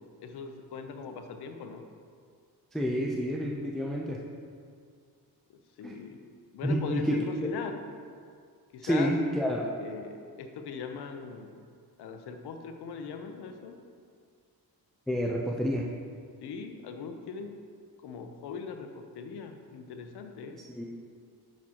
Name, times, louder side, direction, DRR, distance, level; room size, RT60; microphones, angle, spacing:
voice 1, 0.0-1.9 5.5-6.2 6.5-7.8 8.7-9.1 9.8-11.6 12.0-13.8 16.4-17.5 18.0-20.6, left 5 dB, 85° left, 6 dB, 0.7 m, -40 dB
voice 2, 2.7-4.2 5.8-6.0 6.6-7.2 8.8-9.7 15.1-15.9 20.8-20.9, equal, ahead, -2 dB, 0.5 m, -29 dB
8.4 x 6.2 x 2.9 m, 2.1 s
cardioid pair, 105°, 38 cm